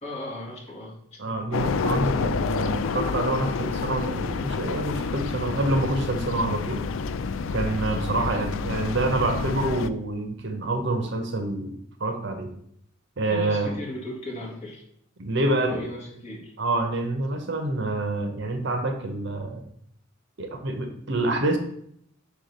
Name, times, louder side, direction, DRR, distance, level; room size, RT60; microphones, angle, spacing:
voice 1, 0.0-1.2 8.2-8.4 13.3-14.8 15.4-16.5, left 1 dB, 35° left, -2 dB, 1.7 m, -36 dB
voice 2, 1.2-6.8 7.5-12.5 13.2-13.7 15.2-15.9 16.6-19.6 20.4-21.6, right 2 dB, 60° right, 6 dB, 0.9 m, -27 dB
sound 1, 1.5-9.9, left 5 dB, 70° left, 0.4 m, -29 dB
5.0 x 4.7 x 5.3 m, 0.69 s
head